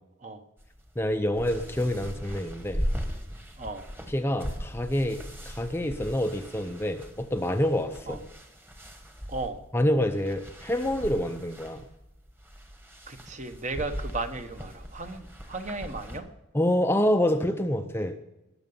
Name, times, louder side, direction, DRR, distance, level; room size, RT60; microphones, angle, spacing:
sound 1, 0.6-16.2, equal, 10° right, 1.3 m, -39 dB
voice 1, 1.0-2.8 4.1-8.2 9.7-11.8 16.5-18.2, left 1 dB, 10° left, 7 dB, 0.6 m, -27 dB
voice 2, 3.6-3.9 8.1-8.2 9.3-9.6 13.1-16.3, right 3 dB, 35° right, 8 dB, 1.0 m, -35 dB
20.0 x 6.8 x 5.5 m, 0.97 s
head